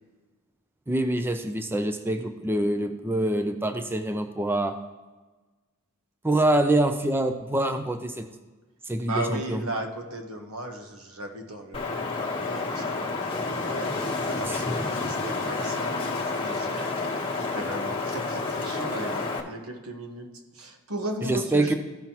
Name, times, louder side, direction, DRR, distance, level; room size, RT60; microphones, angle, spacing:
voice 1, 0.9-4.8 6.2-8.3 8.8-9.6 14.4-14.9 21.2-21.7, right 1 dB, 10° right, 7 dB, 0.4 m, -25 dB
voice 2, 9.0-17.3 17.5-21.8, right 1 dB, 80° right, 4 dB, 1.2 m, -36 dB
Wind, 11.7-19.4, left 3 dB, 25° left, 1.2 m, -29 dB
14.0 x 5.5 x 2.9 m, 1.2 s
head